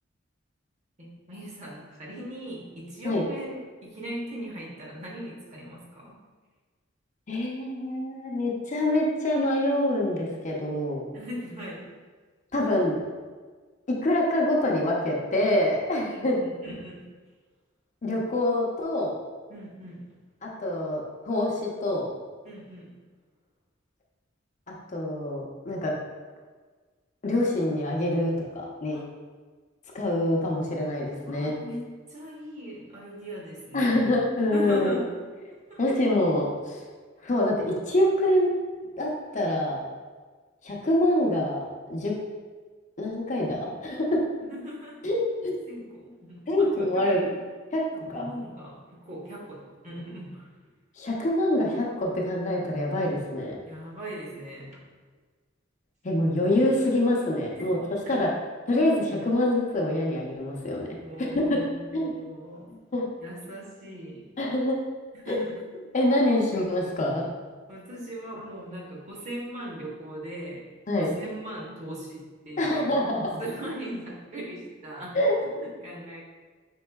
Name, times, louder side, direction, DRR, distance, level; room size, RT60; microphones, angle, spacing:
voice 1, 1.0-6.2 11.1-11.9 16.1-17.0 19.5-20.1 22.4-22.9 28.9-29.1 31.2-34.0 34.5-35.8 44.4-45.0 45.7-47.3 48.1-50.5 53.6-54.8 57.5-57.7 58.0-58.2 61.0-62.7 63.2-64.3 65.1-65.6 67.7-70.6 71.0-73.0 73.4-76.2, right 1 dB, 40° right, -3 dB, 0.9 m, -39 dB
voice 2, 7.3-11.0 12.5-13.0 14.0-16.3 18.0-19.2 20.4-22.1 24.7-25.9 27.2-29.0 29.9-31.5 33.7-35.0 35.8-36.8 37.2-38.5 39.0-39.8 40.6-41.6 41.9-42.1 43.0-44.2 45.0-45.2 45.4-45.5 46.5-47.3 47.7-47.8 48.1-48.3 51.0-53.6 56.0-57.8 58.1-58.3 58.7-60.9 61.2-61.6 61.9-62.1 62.7-63.1 64.4-64.8 65.3-65.4 65.9-67.2 70.9-71.1 72.6-73.4 75.1-75.3, left 1 dB, 40° left, -2 dB, 0.6 m, -25 dB
5.3 x 3.7 x 2.3 m, 1.4 s
head